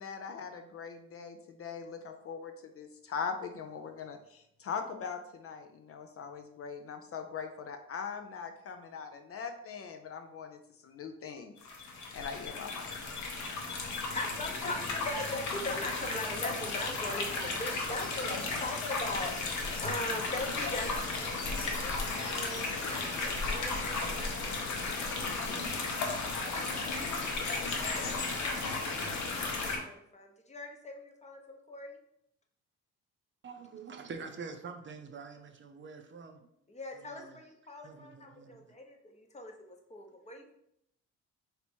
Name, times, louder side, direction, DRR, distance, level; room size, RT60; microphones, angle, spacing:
voice 1, 0.0-11.6 12.1-13.1, left 6 dB, 50° left, 6 dB, 0.5 m, -41 dB
sound 1, 11.6-29.8, left 3 dB, 70° left, 0.9 m, -34 dB
voice 2, 14.1-25.5 26.3-27.4 27.7-32.0 36.7-40.5, left 1 dB, 20° left, 2 dB, 0.8 m, -41 dB
voice 3, 33.4-36.4 37.0-37.4 37.8-38.8 40.4-40.5, right 5 dB, 40° right, 5 dB, 0.5 m, -46 dB
3.4 x 2.9 x 4.3 m, 0.75 s
cardioid pair, 90°, 30 cm